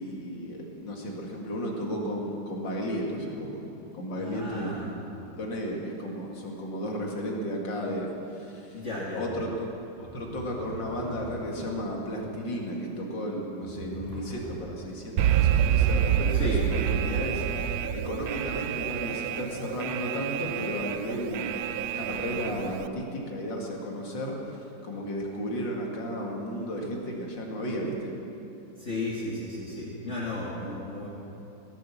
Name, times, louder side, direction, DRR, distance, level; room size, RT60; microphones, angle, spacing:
voice 1, 0.0-3.6 3.9-4.7 5.4-8.1 8.3-8.7 9.1-9.7 10.0-17.5 17.9-21.5 21.9-24.4 24.8-28.1, equal, 75° left, -1 dB, 2.8 m, -33 dB
voice 2, 4.1-4.9 8.7-9.3 16.3-16.7 28.8-31.1, left 2 dB, 40° left, -5 dB, 2.1 m, -34 dB
sound 1, 10.0-11.7 13.6-15.0 16.5-18.1, right 1 dB, 40° right, 5.0 m, -43 dB
Alarm, 15.2-22.9, right 9 dB, 70° right, 0.9 m, -27 dB
17.5 x 11.5 x 7.1 m, 2.9 s
omnidirectional pair, 2.0 m